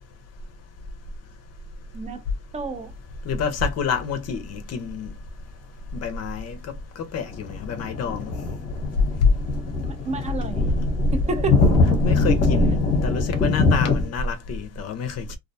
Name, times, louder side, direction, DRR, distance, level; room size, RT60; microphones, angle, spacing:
voice 1, 2.5-2.9 9.8-10.7 11.1-11.6, right 4 dB, 20° right, 0.4 m, -30 dB
voice 2, 3.3-5.1 5.9-6.6 7.0-8.3 12.0-15.4, left 4 dB, 50° left, 0.5 m, -28 dB
sound 1, 5.3-5.4 7.3-14.1, left 3 dB, 25° left, 0.8 m, -22 dB
2.4 x 2.1 x 2.6 m
cardioid pair, 135°, 33 cm